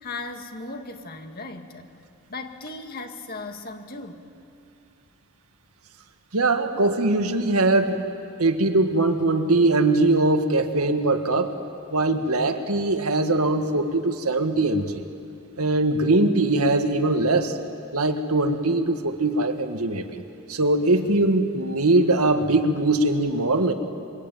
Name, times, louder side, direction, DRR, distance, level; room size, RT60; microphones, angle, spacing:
voice 1, 0.0-1.9 2.3-4.2, left 3 dB, 45° left, 5 dB, 2.0 m, -37 dB
voice 2, 6.3-8.0 8.4-11.5 11.9-15.0 15.6-17.5 17.9-20.2 20.5-23.7, right 2 dB, 90° right, 6 dB, 1.8 m, -21 dB
25.5 x 24.0 x 9.2 m, 2.6 s
head